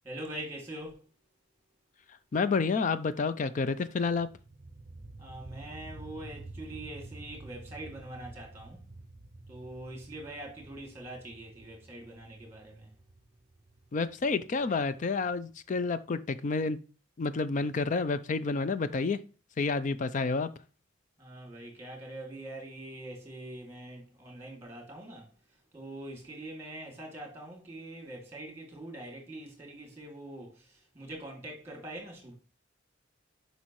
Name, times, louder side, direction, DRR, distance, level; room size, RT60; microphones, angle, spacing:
voice 1, 0.0-1.0 5.2-8.8 9.5-12.9 21.2-25.3 25.7-30.6 30.9-32.3, right 1 dB, 15° right, 2.4 m, -43 dB
voice 2, 2.3-4.3 13.9-16.8 17.2-19.2 19.6-20.5, left 4 dB, 40° left, 0.4 m, -29 dB
sound 1, 4.0-15.6, right 2 dB, 30° right, 0.6 m, -50 dB
8.1 x 5.3 x 3.0 m
head